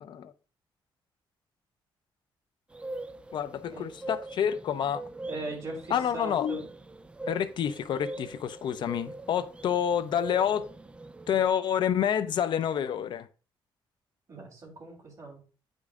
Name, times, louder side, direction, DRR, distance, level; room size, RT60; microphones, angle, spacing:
voice 1, 0.0-0.3 3.3-5.0 5.9-6.6 7.3-10.7 11.3-13.3, left 9 dB, 60° left, 0.4 m, -28 dB
sound 1, 2.7-11.5, right 2 dB, 10° right, 0.3 m, -42 dB
voice 2, 5.3-6.7 14.3-15.4, right 2 dB, 35° right, 3.2 m, -39 dB
9.4 x 5.1 x 2.4 m
cardioid pair, 150°, 9 cm